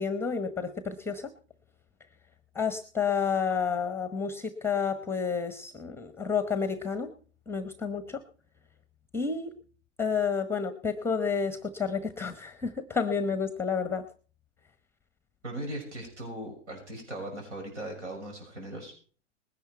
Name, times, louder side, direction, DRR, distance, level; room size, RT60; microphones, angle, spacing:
voice 1, 0.0-1.3 2.5-7.1 7.5-8.2 9.1-9.5 10.0-14.0, left 6 dB, 5° left, 11 dB, 0.9 m, -30 dB
voice 2, 15.4-18.9, right 1 dB, 80° right, 2 dB, 6.5 m, -39 dB
20.0 x 10.5 x 4.5 m, 0.42 s
hypercardioid pair, 115°, 35 cm